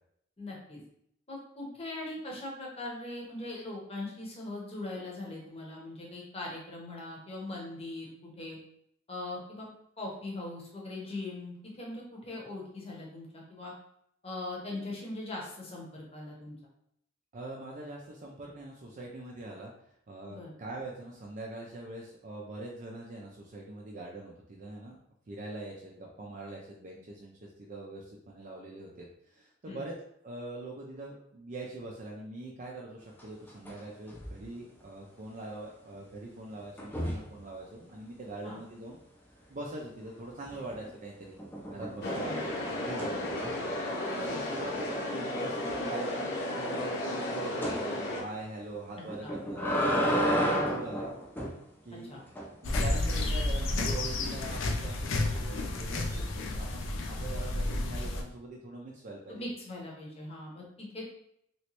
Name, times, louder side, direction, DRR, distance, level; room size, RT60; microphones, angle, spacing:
voice 1, 0.4-0.8 1.3-8.6 9.1-9.7 10.0-13.7 14.2-16.5 20.3-20.5 29.6-29.8 38.4-38.6 42.0-42.4 44.1-44.4 49.0-49.3 50.4-50.8 52.1-52.2 59.3-61.1, left 2 dB, 30° left, -2 dB, 0.9 m, -40 dB
voice 2, 17.3-19.7 20.1-25.0 25.3-30.0 30.2-39.0 39.5-41.4 41.7-42.3 42.7-43.5 44.2-49.6 49.9-51.1 51.8-52.3 52.6-59.5, right 2 dB, 40° right, -1 dB, 0.4 m, -43 dB
sound 1, 33.2-33.8 34.1-34.5 36.8-37.3 40.4-40.9 41.4-43.8 44.2-44.3 44.7-44.8 45.2-45.3 47.6-47.8 49.1-51.6 52.4-52.8, equal, 10° left, 0.6 m, -32 dB
sound 2, 42.0-48.2, left 1 dB, 60° left, 0.9 m, -34 dB
sound 3, 52.6-58.2, left 2 dB, 80° left, 0.5 m, -31 dB
3.1 x 3.0 x 2.9 m, 0.73 s
head